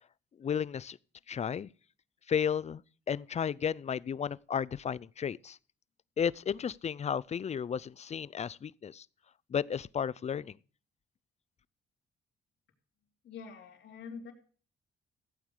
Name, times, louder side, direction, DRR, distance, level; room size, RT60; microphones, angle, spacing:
voice 1, 0.4-1.0 1.3-1.7 2.3-2.8 3.1-5.6 6.2-9.1 9.5-10.6, left 7 dB, 35° left, 0.5 m, -33 dB
voice 2, 13.2-14.3, left 5 dB, 65° left, 3.3 m, -45 dB
15.5 x 9.0 x 4.9 m
cardioid pair, 90°, 20 cm